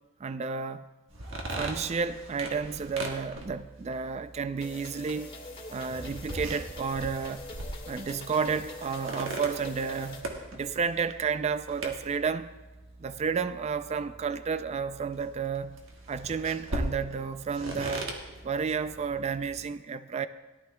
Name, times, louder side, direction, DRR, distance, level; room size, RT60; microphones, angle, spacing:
voice 1, 0.2-0.8 1.6-5.3 5.7-7.5 7.9-12.5 13.0-15.8 16.1-18.2 18.4-20.3, right 5 dB, 30° right, 0.3 m, -31 dB
sound 1, 1.1-19.6, right 1 dB, 65° right, 1.4 m, -41 dB
sound 2, 4.6-10.2, left 2 dB, 25° left, 1.5 m, -44 dB
17.5 x 11.5 x 2.2 m
head